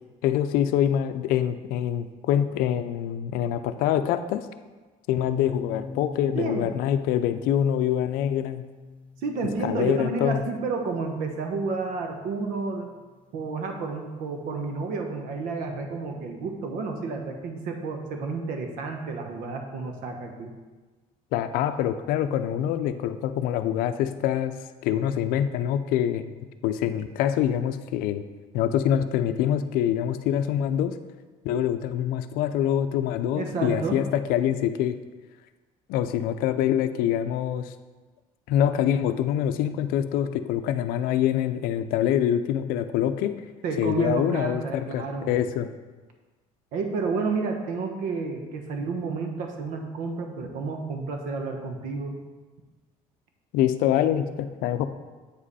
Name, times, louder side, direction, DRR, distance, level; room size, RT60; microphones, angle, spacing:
voice 1, 0.2-4.5 5.1-8.6 9.6-10.4 21.3-24.5 24.8-26.3 26.6-28.2 28.5-30.9 31.4-35.0 35.9-37.7 38.5-43.4 43.8-45.7 53.5-54.9, left 10 dB, 80° left, 10 dB, 0.5 m, -25 dB
sound 1, 5.2-12.9, left 3 dB, 10° left, 0.4 m, -43 dB
voice 2, 6.3-6.7 9.2-12.9 13.3-20.5 33.3-34.0 43.6-45.3 46.7-52.2, right 4 dB, 70° right, 4 dB, 1.0 m, -30 dB
8.2 x 5.2 x 4.2 m, 1.3 s
cardioid pair, 150°, 15 cm